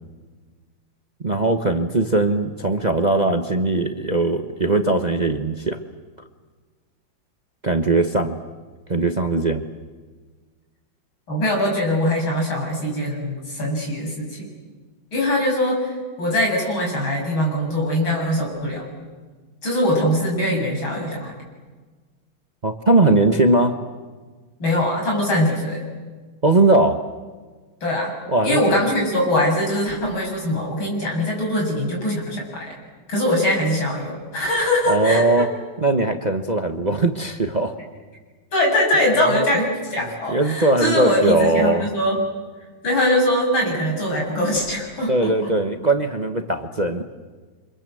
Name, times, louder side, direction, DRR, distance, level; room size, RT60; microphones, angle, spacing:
voice 1, 1.2-5.8 7.6-8.4 8.9-9.6 22.6-23.8 26.4-27.0 28.3-28.8 34.9-35.5 35.8-37.7 39.3-39.4 40.0-41.9 45.1-47.0, right 2 dB, 25° right, 6 dB, 1.0 m, -20 dB
voice 2, 11.3-14.5 15.1-18.8 19.6-21.3 24.6-25.8 27.8-28.1 28.4-32.7 33.1-35.5 38.5-42.2 42.8-45.3, left 1 dB, 85° left, -1 dB, 8.1 m, -22 dB
29.5 x 26.0 x 7.8 m, 1.4 s
omnidirectional pair, 2.1 m